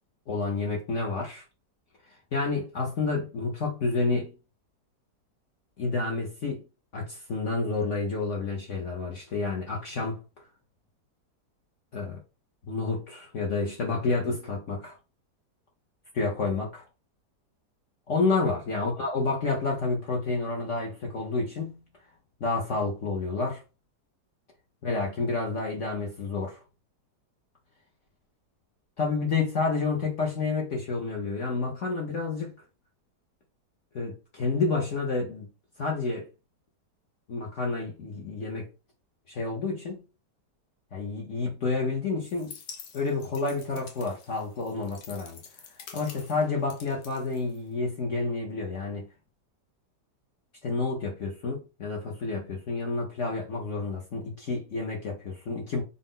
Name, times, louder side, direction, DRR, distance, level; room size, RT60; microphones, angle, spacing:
voice 1, 0.3-1.4 2.3-4.3 5.8-6.6 6.9-10.2 11.9-12.2 12.7-15.0 16.1-16.8 18.1-21.8 22.4-23.6 24.8-26.6 29.0-32.5 33.9-35.5 35.8-36.3 37.3-38.7 39.3-40.0 40.9-42.5 42.9-45.4 45.9-49.1 50.6-55.8, left 3 dB, 55° left, 0.9 m, -29 dB
sound 1, 42.2-47.9, left 7 dB, 90° left, 1.4 m, -48 dB
3.8 x 2.5 x 3.6 m
omnidirectional pair, 1.8 m